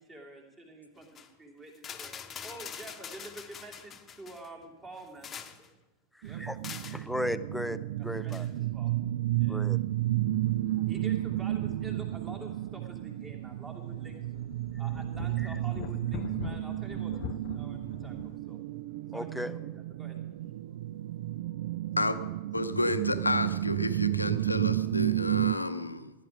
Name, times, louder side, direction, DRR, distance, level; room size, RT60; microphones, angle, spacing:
voice 1, 0.0-2.1 2.4-5.7 6.2-6.4 8.0-8.9 9.4-9.6 10.1-14.3 14.8-18.6 19.1-19.6 20.0-20.6, right 1 dB, 20° right, 1 dB, 2.8 m, -48 dB
sound 1, 1.0-1.3 1.8-4.5 5.0-5.7 6.6-7.0 8.3-8.5, left 7 dB, 20° left, 1.1 m, -44 dB
sound 2, 6.2-25.6, right 14 dB, 55° right, 0.4 m, -32 dB
voice 2, 6.9-8.5 9.5-9.8 19.1-19.5, left 1 dB, ahead, 14 dB, 0.5 m, -35 dB
sound 3, 9.7-9.8 10.2-10.3 11.2-12.6 13.0-13.1 13.6-18.4, left 12 dB, 45° left, 0.5 m, -44 dB
voice 3, 22.5-26.1, left 2 dB, 85° left, 10 dB, 0.8 m, -31 dB
16.0 x 10.0 x 5.1 m, 1.1 s
figure-of-eight pair, 90°, 0 cm